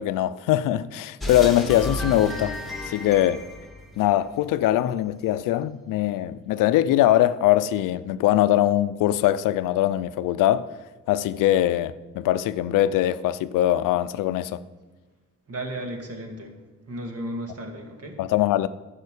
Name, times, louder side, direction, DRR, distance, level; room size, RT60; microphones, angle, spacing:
voice 1, 0.0-2.6 2.8-3.4 4.0-10.7 11.1-14.6 18.2-18.7, left 13 dB, 90° left, 0.5 m, -22 dB
sound 1, 1.2-4.6, left 1 dB, ahead, 2.0 m, -33 dB
voice 2, 15.5-16.5 16.9-18.2, right 1 dB, 50° right, 2.2 m, -34 dB
11.0 x 5.8 x 8.3 m
cardioid pair, 95°, 31 cm